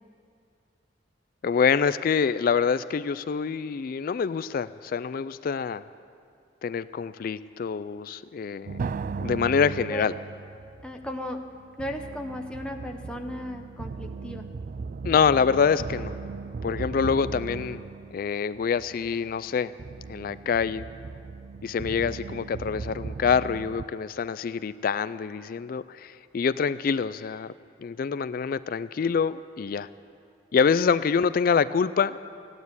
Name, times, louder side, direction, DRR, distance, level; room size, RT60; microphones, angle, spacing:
voice 1, 1.4-5.8 6.6-8.9 9.2-10.1 15.0-16.1 16.6-17.8 18.1-19.7 20.1-20.8 21.6-27.5 27.8-29.9 30.5-32.3, left 6 dB, 55° left, 15 dB, 0.3 m, -26 dB
sound 1, 8.7-23.9, right 4 dB, 50° right, 0.3 m, -37 dB
voice 2, 10.8-11.4 11.8-14.5, equal, 5° left, 2 dB, 0.8 m, -35 dB
15.5 x 9.4 x 9.6 m, 2.3 s
head